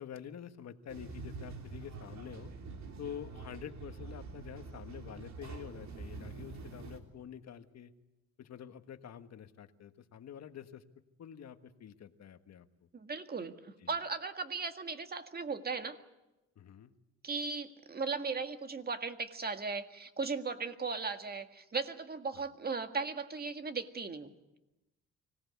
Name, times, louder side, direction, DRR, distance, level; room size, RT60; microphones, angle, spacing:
voice 1, 0.0-2.5 3.0-7.9 8.4-10.8 11.2-12.7 13.8-13.9 16.6-16.9 22.3-22.5, left 9 dB, 60° left, 9 dB, 1.5 m, -47 dB
sound 1, 0.9-7.0, right 4 dB, 65° right, 3.2 m, -46 dB
voice 2, 12.9-16.0 17.2-24.3, right 4 dB, 30° right, 7 dB, 1.8 m, -37 dB
25.0 x 18.0 x 8.3 m, 0.98 s
cardioid pair, 90°, 30 cm